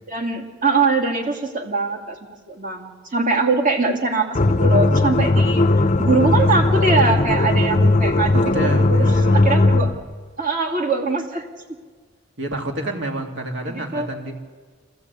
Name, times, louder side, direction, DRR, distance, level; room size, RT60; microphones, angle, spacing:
voice 1, 0.1-2.2 2.5-5.6 6.0-9.0 9.3-10.0 10.4-11.5 13.6-14.1, right 3 dB, 40° right, 3 dB, 2.7 m, -22 dB
sound 1, 4.3-10.0, left 2 dB, 35° left, 0.8 m, -17 dB
voice 2, 8.3-9.7 12.4-14.3, right 1 dB, 60° right, 2 dB, 3.0 m, -29 dB
26.5 x 15.0 x 8.3 m, 1.5 s
head